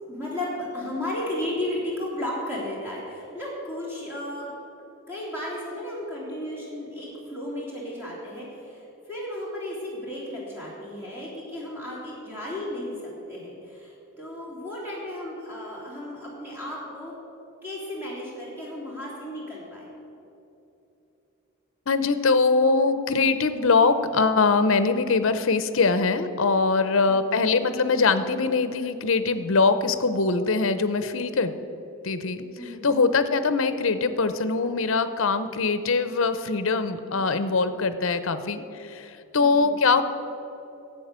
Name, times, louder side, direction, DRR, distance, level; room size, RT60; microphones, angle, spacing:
voice 1, 0.1-4.5 5.1-17.1 17.6-19.9 27.1-27.4 32.6-33.0 37.1-37.3 39.4-39.8, left 1 dB, 10° right, -6 dB, 3.2 m, -34 dB
voice 2, 21.9-31.5 32.0-32.4 32.8-40.0, left 4 dB, 65° left, 11 dB, 0.7 m, -22 dB
11.0 x 8.1 x 8.1 m, 2.9 s
head